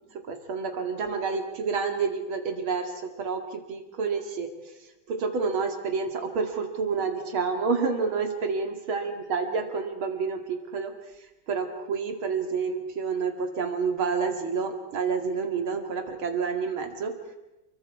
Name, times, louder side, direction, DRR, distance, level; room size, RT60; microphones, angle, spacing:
voice 1, 0.3-4.5 5.1-10.9 11.5-17.1, right 5 dB, 90° right, 5 dB, 3.0 m, -29 dB
29.5 x 22.5 x 4.8 m, 0.96 s
omnidirectional pair, 2.2 m